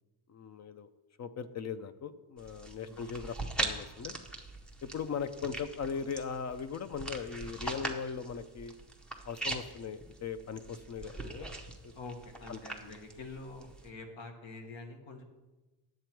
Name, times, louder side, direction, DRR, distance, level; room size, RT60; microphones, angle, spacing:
voice 1, 0.3-0.9 1.2-4.2 4.8-8.8 9.2-11.5 11.8-11.9 12.5-12.9, left 6 dB, 40° left, 13 dB, 0.4 m, -39 dB
sound 1, 2.4-13.9, right 2 dB, ahead, 0.7 m, -41 dB
voice 2, 11.9-15.2, left 3 dB, 85° left, 4 dB, 1.6 m, -46 dB
10.0 x 7.7 x 4.5 m, 1.1 s
cardioid pair, 165°, 45 cm